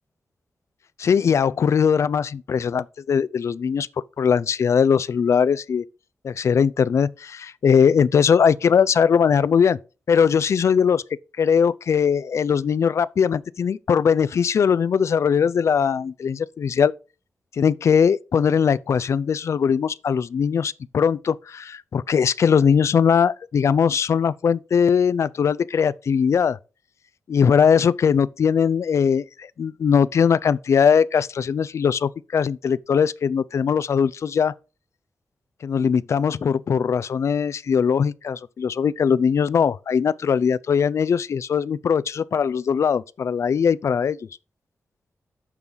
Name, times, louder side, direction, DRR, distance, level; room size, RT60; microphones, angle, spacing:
voice 1, 1.0-3.9 4.2-5.8 6.2-9.8 10.1-11.0 11.4-16.9 17.5-26.6 27.3-34.5 35.6-44.2, left 7 dB, 65° left, 0.4 m, -20 dB
8.9 x 6.2 x 3.9 m
wide cardioid pair, 160°, 5 cm